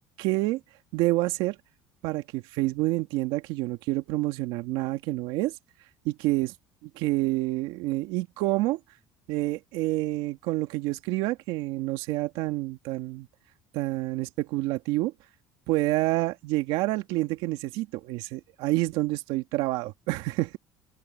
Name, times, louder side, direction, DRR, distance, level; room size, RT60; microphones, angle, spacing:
voice 1, 0.2-0.6 0.9-1.6 2.0-5.5 6.1-6.5 7.0-8.8 9.3-13.3 13.7-15.1 15.7-20.6, right 18 dB, 75° right, 2.0 m, -28 dB
open air
supercardioid pair, 95°, 9 cm